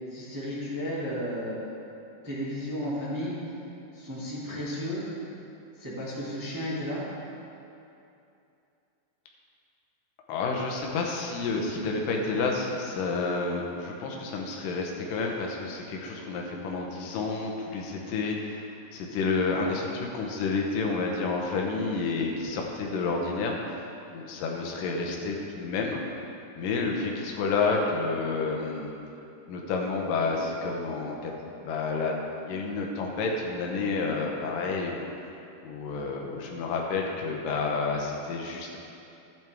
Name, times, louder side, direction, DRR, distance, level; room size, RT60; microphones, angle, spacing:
voice 1, 0.1-1.6 2.2-3.4 3.9-5.0 5.8-7.0, equal, 20° right, -10 dB, 0.5 m, -33 dB
voice 2, 10.3-23.5 24.1-26.0 26.6-28.9 29.5-32.1 32.4-35.0 35.6-38.8, left 4 dB, 75° left, 0 dB, 2.0 m, -30 dB
12.5 x 9.1 x 3.5 m, 2.7 s
omnidirectional pair, 5.0 m